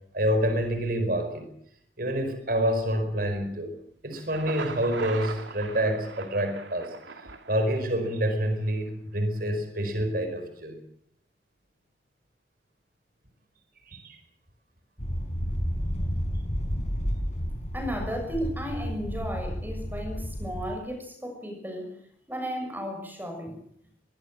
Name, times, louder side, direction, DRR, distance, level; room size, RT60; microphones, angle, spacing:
voice 1, 0.1-1.5 2.0-3.8 4.0-6.9 7.5-10.8 13.9-14.2, equal, 50° right, 8 dB, 4.9 m, -27 dB
Thunder, 4.1-8.1, right 4 dB, 85° right, 2.5 m, -40 dB
sound 1, 15.0-20.8, equal, 40° left, 5.3 m, -31 dB
voice 2, 17.7-22.0 22.3-23.6, equal, 10° right, 4 dB, 6.4 m, -34 dB
23.0 x 21.5 x 7.5 m, 0.70 s
head